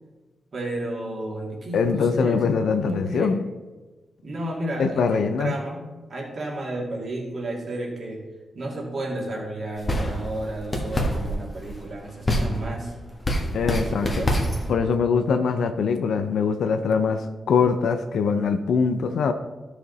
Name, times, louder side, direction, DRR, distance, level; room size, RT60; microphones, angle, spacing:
voice 1, 0.5-3.4 4.2-8.2 8.5-12.9 13.7-14.4, right 1 dB, 50° right, -2 dB, 2.4 m, -32 dB
voice 2, 1.7-3.4 4.8-5.5 13.5-14.1 14.7-19.3, left 5 dB, 85° left, 8 dB, 0.5 m, -23 dB
sound 1, 9.8-14.7, equal, 25° left, 1.6 m, -27 dB
13.0 x 5.0 x 4.0 m, 1.2 s
cardioid pair, 100°, 0 cm